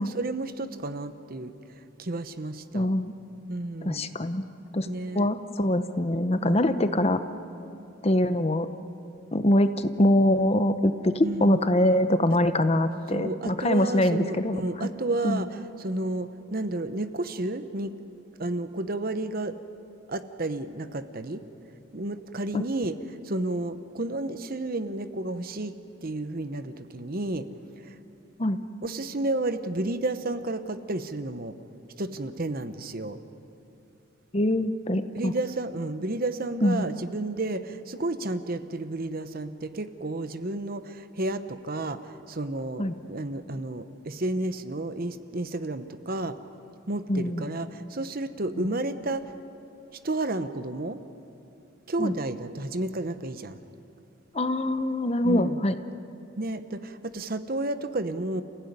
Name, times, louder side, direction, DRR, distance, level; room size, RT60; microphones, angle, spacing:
voice 1, 0.0-1.5 2.0-2.9 3.5-4.1 4.9-5.3 6.4-6.8 11.2-11.6 13.1-17.9 18.4-19.6 20.1-21.4 21.9-23.0 23.2-25.7 26.0-27.5 27.8-28.0 28.8-31.5 32.0-33.2 35.1-46.4 46.9-49.3 50.0-51.0 51.9-53.6 55.2-55.6 56.4-58.4, right 2 dB, 45° right, 11 dB, 0.9 m, -31 dB
voice 2, 2.7-3.1 3.8-4.4 4.7-4.9 5.1-7.2 8.0-8.7 9.3-14.9 15.2-15.4 22.5-22.6 28.4-28.6 34.3-35.3 36.6-36.9 42.8-42.9 47.1-47.4 52.0-52.1 54.3-55.8, left 1 dB, 30° left, 10 dB, 0.8 m, -24 dB
29.5 x 16.0 x 9.6 m, 2.7 s
head